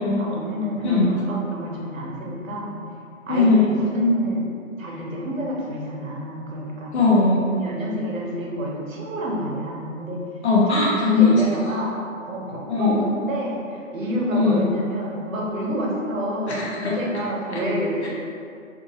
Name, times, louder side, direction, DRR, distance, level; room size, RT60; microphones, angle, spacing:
voice 1, 0.0-2.8 3.3-4.5 4.8-6.9 7.6-10.3 10.9-12.0 12.2-18.1, equal, 85° right, -3 dB, 0.9 m, -28 dB
voice 2, 0.8-1.2 3.3-3.8 6.9-7.6 10.4-11.8 12.7-12.9 14.3-14.6 16.5-17.0 17.5-17.6 18.0-18.1, left 3 dB, 60° left, -5 dB, 0.9 m, -19 dB
2.7 x 2.6 x 2.8 m, 2.4 s
hypercardioid pair, 165°, 39 cm